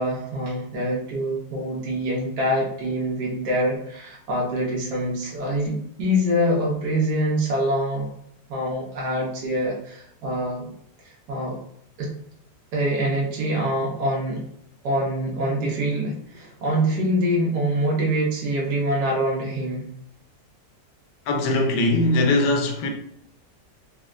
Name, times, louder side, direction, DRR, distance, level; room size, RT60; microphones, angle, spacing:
voice 1, 0.0-8.1 8.5-10.7 11.0-11.6 12.0-12.1 12.7-14.4 14.8-19.8, equal, 75° right, 1.3 m, -25 dB
voice 2, 21.3-22.9, left 2 dB, 75° left, 1.2 m, -21 dB
4.1 x 2.1 x 2.4 m
omnidirectional pair, 1.8 m